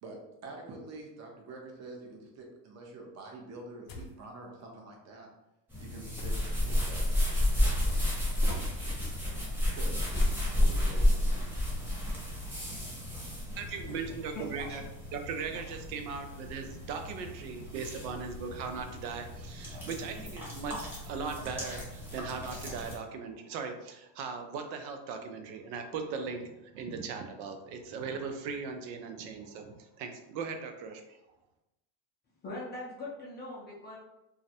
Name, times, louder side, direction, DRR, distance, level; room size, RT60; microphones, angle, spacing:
voice 1, 0.0-5.3 5.8-8.1 8.4-8.6 9.3-10.2 10.5-11.5, right 2 dB, 35° right, 0 dB, 0.6 m, -47 dB
sound 1, 3.9-4.3 6.2-6.7 7.7-8.3 10.0-12.0, left 3 dB, 70° left, 0.7 m, -47 dB
sound 2, 5.7-22.9, left 1 dB, 5° right, 0.8 m, -32 dB
voice 2, 13.6-14.8 15.1-31.2, right 5 dB, 90° right, 5 dB, 0.6 m, -39 dB
voice 3, 14.3-14.8 32.4-34.0, left 2 dB, 25° left, -5 dB, 0.3 m, -41 dB
2.4 x 2.0 x 2.7 m, 0.91 s
supercardioid pair, 120°, 50 cm